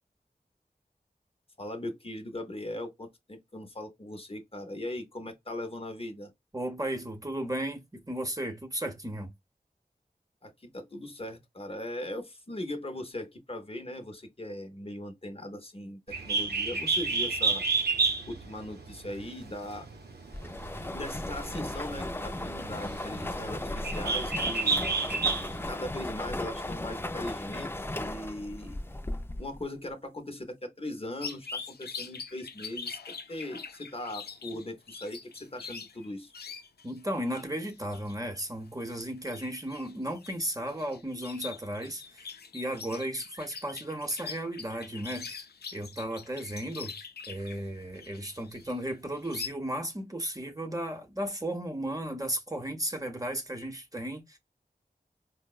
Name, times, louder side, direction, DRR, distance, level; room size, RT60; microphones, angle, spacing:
voice 1, 1.6-6.3 10.4-16.0 16.3-17.6 18.3-19.9 20.9-24.8 25.6-28.8 29.4-36.3, left 1 dB, 35° left, 0.7 m, -39 dB
voice 2, 6.5-9.3 36.8-45.4 45.7-46.9 47.3-54.4, right 1 dB, 20° right, 0.7 m, -35 dB
Bird, 16.1-25.7, right 4 dB, 85° right, 0.6 m, -31 dB
sound 1, 20.3-29.6, left 1 dB, 15° left, 0.3 m, -36 dB
sound 2, 31.2-37.0 37.3-49.5, left 5 dB, 90° left, 0.4 m, -43 dB
4.5 x 2.0 x 2.3 m
wide cardioid pair, 55°, 16 cm